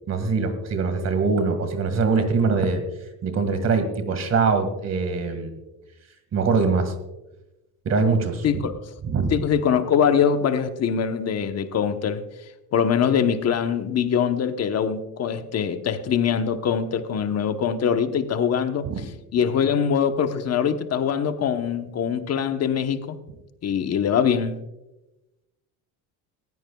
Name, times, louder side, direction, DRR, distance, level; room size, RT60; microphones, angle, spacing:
voice 1, 0.1-2.8 3.2-5.5 6.3-6.9 7.9-8.7 9.0-9.3 18.9-19.0, right 4 dB, 40° right, 8 dB, 1.9 m, -23 dB
voice 2, 8.4-8.9 9.3-12.2 12.7-18.9 19.3-23.2 23.6-24.6, left 7 dB, 40° left, 8 dB, 1.0 m, -23 dB
19.0 x 15.5 x 2.3 m, 0.99 s
cardioid pair, 135°, 41 cm